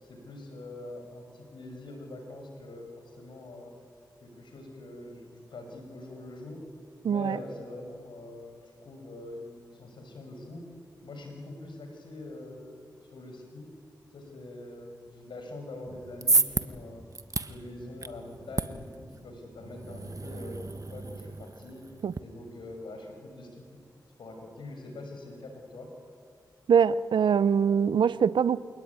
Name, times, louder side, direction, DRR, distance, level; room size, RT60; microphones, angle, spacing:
voice 1, 0.0-3.7 4.2-6.6 7.0-10.6 11.0-13.7 14.1-17.0 17.4-21.9 22.2-23.7 24.2-25.9, left 2 dB, 85° left, 5.7 m, -44 dB
voice 2, 7.0-7.4 22.0-22.1 26.7-28.6, right 7 dB, 85° right, 0.6 m, -23 dB
sound 1, 15.9-22.2, right 3 dB, 45° right, 1.4 m, -32 dB
28.0 x 19.5 x 9.5 m
cardioid pair, 40°, 8 cm